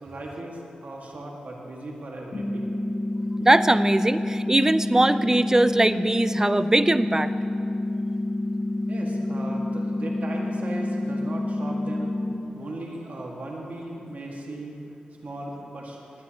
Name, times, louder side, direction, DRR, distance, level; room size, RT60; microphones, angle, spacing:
voice 1, 0.0-2.7 8.9-12.1 12.5-14.8 15.2-16.0, right 1 dB, 60° right, -2 dB, 2.0 m, -37 dB
sound 1, 2.3-12.3, left 1 dB, 40° left, 1.6 m, -28 dB
voice 2, 3.4-7.3, right 1 dB, 20° right, 13 dB, 0.4 m, -21 dB
19.0 x 9.6 x 3.1 m, 2.7 s
cardioid pair, 50°, 3 cm